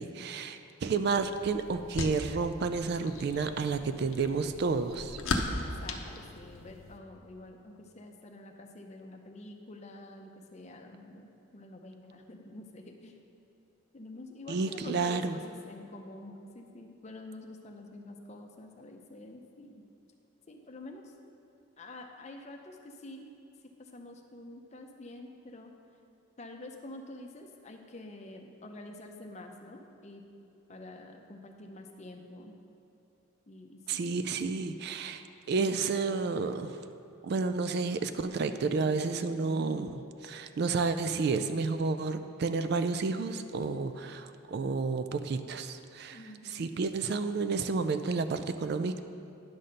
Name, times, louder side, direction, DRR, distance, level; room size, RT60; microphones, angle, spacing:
voice 1, 0.0-5.2 14.5-15.4 33.9-36.8 37.2-46.2 46.5-49.0, right 4 dB, 50° right, 10 dB, 0.3 m, -31 dB
sound 1, 0.8-7.0, left 2 dB, 75° left, 0.7 m, -38 dB
voice 2, 5.6-13.2 13.9-19.8 20.5-21.1 21.8-23.3 23.8-25.7 26.4-30.3 30.7-32.5 33.5-34.1 46.1-46.7, left 2 dB, 30° left, 3 dB, 0.6 m, -47 dB
10.5 x 4.2 x 6.4 m, 2.8 s
head